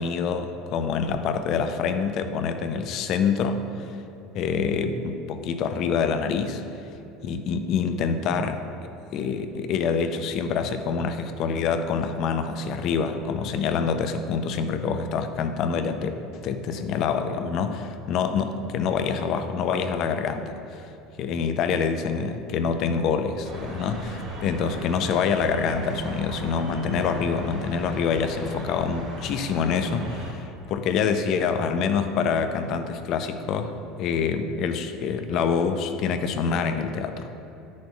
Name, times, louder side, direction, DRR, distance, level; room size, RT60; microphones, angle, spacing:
voice 1, 0.0-3.6 4.3-6.6 7.2-8.6 9.1-20.9 21.2-33.7 34.0-37.3, left 6 dB, 55° left, 8 dB, 0.5 m, -26 dB
sound 1, 23.4-30.3, right 1 dB, 60° right, 1.6 m, -37 dB
10.0 x 6.3 x 2.4 m, 2.8 s
hypercardioid pair, 75°, 0 cm